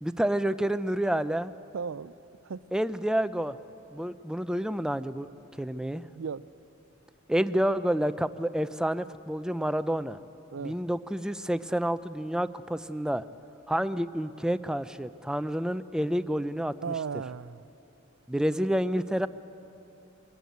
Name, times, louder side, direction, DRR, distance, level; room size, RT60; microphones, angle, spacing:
voice 1, 0.0-1.5 2.7-3.6 3.9-5.3 5.6-6.0 7.3-10.2 10.6-13.3 13.7-16.9 18.3-19.3, equal, 5° right, 13 dB, 0.4 m, -29 dB
voice 2, 1.7-2.1 2.4-2.6 6.1-6.5 10.5-10.8 16.8-17.7, right 6 dB, 85° right, 17 dB, 0.5 m, -35 dB
23.5 x 15.5 x 9.4 m, 2.9 s
head